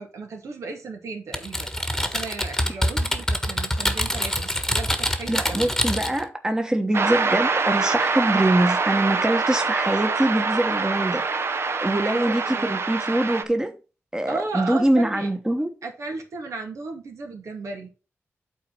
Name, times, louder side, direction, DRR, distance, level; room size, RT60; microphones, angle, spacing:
voice 1, 0.0-1.7 2.0-5.7 11.9-12.8 14.3-15.3 15.8-17.9, right 3 dB, 85° right, 2.4 m, -35 dB
Typing, 1.3-6.2, equal, 10° left, 1.3 m, -25 dB
voice 2, 5.3-11.2 11.8-13.7 14.1-15.7, right 1 dB, 15° right, 1.2 m, -23 dB
sound 1, 6.9-13.4, right 4 dB, 55° right, 0.9 m, -24 dB
8.6 x 4.2 x 5.6 m
wide cardioid pair, 85°, 5 cm